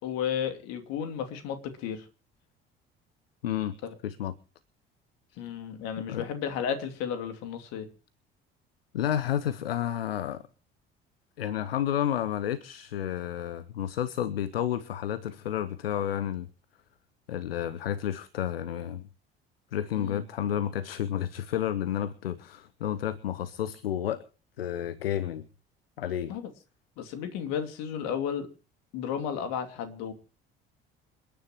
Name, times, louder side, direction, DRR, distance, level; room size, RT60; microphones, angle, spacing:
voice 1, 0.0-2.1 3.8-3.9 5.4-7.9 19.9-20.2 26.3-26.5 27.0-28.5 28.9-30.1, left 8 dB, 60° left, 7 dB, 2.8 m, -33 dB
voice 2, 3.4-3.7 4.0-4.3 6.1-6.2 8.9-10.4 11.4-16.5 17.3-19.1 19.7-24.2 24.6-25.4 26.0-26.3, left 10 dB, 80° left, 18 dB, 0.8 m, -31 dB
28.0 x 10.0 x 3.0 m, 0.35 s
figure-of-eight pair, 55°, 30 cm